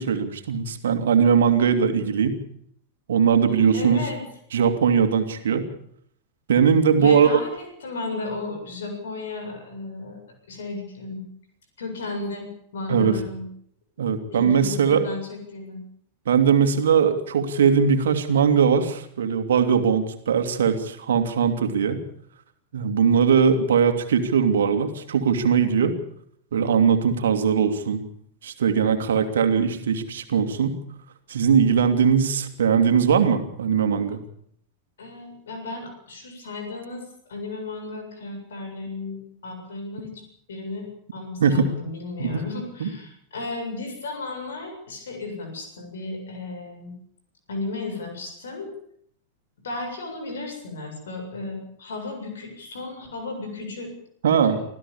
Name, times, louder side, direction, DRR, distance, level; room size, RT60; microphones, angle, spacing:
voice 1, 0.0-2.4 3.1-4.0 4.5-5.6 6.5-7.4 12.9-13.2 14.0-15.0 16.3-22.0 22.7-25.9 26.5-28.0 28.4-30.8 31.3-34.2 41.4-41.7 42.2-42.4 42.8-42.9 54.2-54.6, right 7 dB, 65° right, 7 dB, 2.6 m, -20 dB
voice 2, 3.7-4.2 7.0-10.2 10.5-11.2 11.8-13.4 14.2-15.8 35.0-40.2 40.5-46.9 47.5-48.7 49.6-53.9 54.3-54.6, left 3 dB, 65° left, 5 dB, 7.5 m, -34 dB
25.5 x 16.0 x 7.2 m, 0.68 s
figure-of-eight pair, 90°, 0 cm